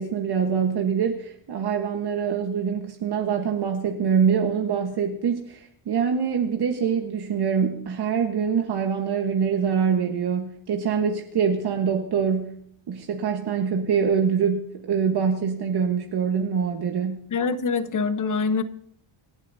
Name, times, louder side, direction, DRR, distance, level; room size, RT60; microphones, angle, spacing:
voice 1, 0.0-12.6 12.9-17.2, right 6 dB, 50° right, 3 dB, 1.3 m, -24 dB
voice 2, 17.3-18.6, left 5 dB, 40° left, 11 dB, 1.0 m, -24 dB
27.5 x 11.5 x 2.7 m, 0.68 s
cardioid pair, 140°, 50 cm